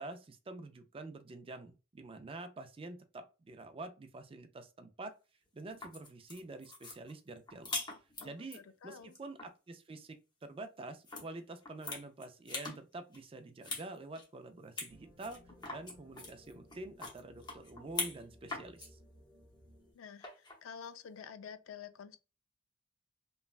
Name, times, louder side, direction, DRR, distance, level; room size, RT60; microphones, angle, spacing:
voice 1, 0.0-5.1 5.5-7.7 8.2-15.4 15.7-19.0, right 2 dB, 30° right, 0.4 m, -47 dB
sound 1, 5.6-8.6 9.0-9.5 11.1-11.2 11.6-12.8 13.1-13.9 14.1-14.2 14.8-14.9 15.2-18.2 18.5-18.9 20.2-20.6, left 3 dB, 20° left, 0.8 m, -42 dB
voice 2, 8.2-9.1 19.9-22.2, left 7 dB, 90° left, 0.4 m, -49 dB
sound 2, 14.9-19.9, equal, 10° right, 0.9 m, -60 dB
3.0 x 2.2 x 2.4 m
head